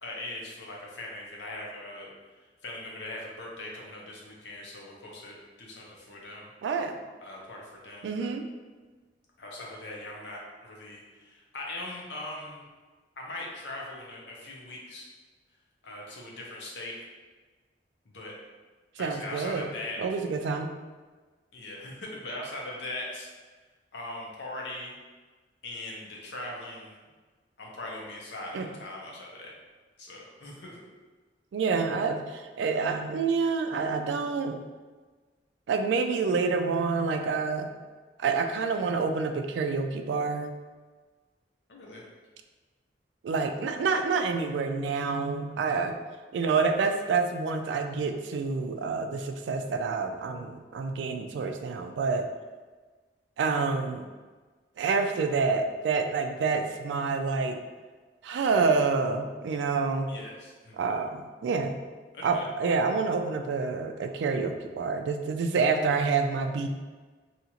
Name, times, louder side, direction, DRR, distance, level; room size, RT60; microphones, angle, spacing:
voice 1, 0.0-2.1 2.6-6.5 7.2-8.3 9.4-12.7 13.2-15.1 15.8-17.1 18.1-18.3 19.0-20.0 21.5-23.3 23.9-25.0 25.6-26.9 27.6-29.5 30.0-30.8 41.7-42.0 45.7-45.8 60.1-60.8 62.1-62.5, left 2 dB, 80° left, -3 dB, 0.7 m, -40 dB
voice 2, 6.6-7.0 8.0-8.4 19.0-19.7 20.0-20.7 28.5-28.7 31.5-34.6 35.7-37.7 38.2-40.5 43.2-45.9 46.3-52.3 53.4-54.1 54.8-57.6 58.2-60.1 60.8-61.8 62.2-66.7, right 4 dB, 90° right, 6 dB, 0.3 m, -28 dB
2.8 x 2.4 x 2.8 m, 1.3 s
head